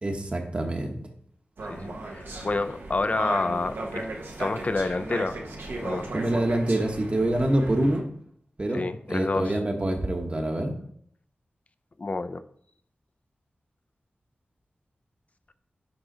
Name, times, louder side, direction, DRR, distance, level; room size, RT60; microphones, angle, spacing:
voice 1, 0.0-1.0 6.1-8.0 8.6-10.7, right 1 dB, 30° right, 4 dB, 1.0 m, -26 dB
sound 1, 1.6-8.0, right 2 dB, 85° right, 1.1 m, -36 dB
voice 2, 1.7-4.0 4.4-5.4 5.8-6.1 8.7-9.6 12.0-12.4, left 3 dB, 40° left, 11 dB, 0.4 m, -28 dB
9.6 x 3.7 x 3.9 m, 0.66 s
wide cardioid pair, 100°, 4 cm